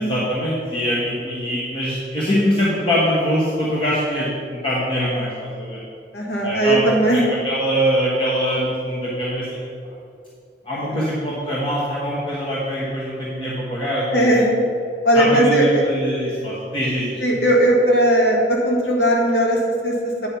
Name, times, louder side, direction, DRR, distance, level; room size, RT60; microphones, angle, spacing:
voice 1, 0.0-5.8 6.4-6.8 7.1-9.6 10.6-14.2 15.1-17.2, equal, 30° left, -7 dB, 1.3 m, -23 dB
voice 2, 6.1-7.3 10.9-11.0 14.1-14.5 15.0-15.8 17.2-20.3, right 1 dB, 70° left, -2 dB, 1.8 m, -18 dB
8.9 x 5.4 x 5.6 m, 2.5 s
head